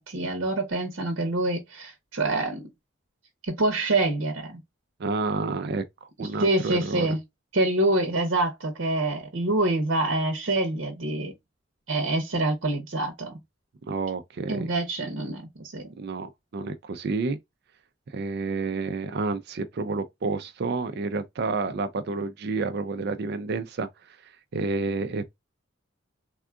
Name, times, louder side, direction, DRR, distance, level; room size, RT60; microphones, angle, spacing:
voice 1, 0.0-2.7 3.4-4.6 6.2-7.2 7.5-11.3 11.9-13.3 14.5-15.9, right 2 dB, 75° right, 0.8 m, -26 dB
voice 2, 5.0-7.2 13.9-14.7 16.0-17.4 18.1-25.4, right 3 dB, 55° right, 0.4 m, -30 dB
3.6 x 2.3 x 2.3 m
head